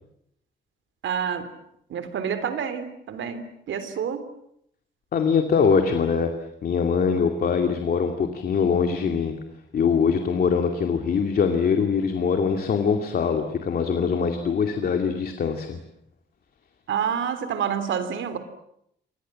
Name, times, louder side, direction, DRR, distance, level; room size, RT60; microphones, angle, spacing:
voice 1, 1.0-1.5 1.9-4.3 16.9-18.4, right 7 dB, 85° right, 11 dB, 3.4 m, -28 dB
voice 2, 5.1-6.3 6.6-9.4 9.7-15.8, left 6 dB, 50° left, 5 dB, 2.5 m, -23 dB
29.5 x 25.0 x 7.7 m, 0.74 s
wide cardioid pair, 180°, 19 cm